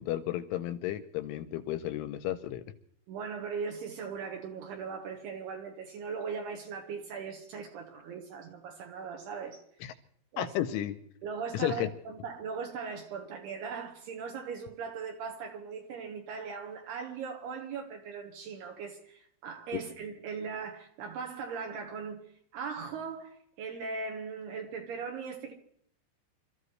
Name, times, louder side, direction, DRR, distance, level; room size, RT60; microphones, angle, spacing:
voice 1, 0.0-2.6 9.8-9.9 10.4-11.0 11.5-11.9, left 12 dB, 80° left, 3.0 m, -33 dB
voice 2, 3.1-10.0 10.3-10.5 11.2-22.2 22.5-25.5, right 5 dB, 70° right, 2.8 m, -39 dB
27.5 x 14.0 x 3.2 m
omnidirectional pair, 5.9 m